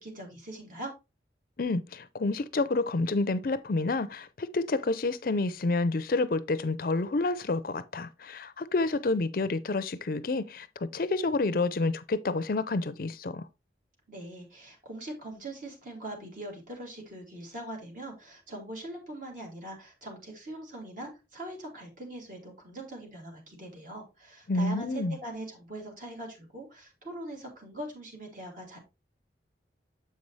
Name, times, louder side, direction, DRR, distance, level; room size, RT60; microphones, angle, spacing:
voice 1, 0.0-0.9 14.1-28.8, right 1 dB, 45° right, 2.8 m, -42 dB
voice 2, 1.6-10.7 10.9-13.4 24.5-25.2, left 3 dB, 50° left, 0.5 m, -29 dB
7.6 x 5.4 x 3.2 m
head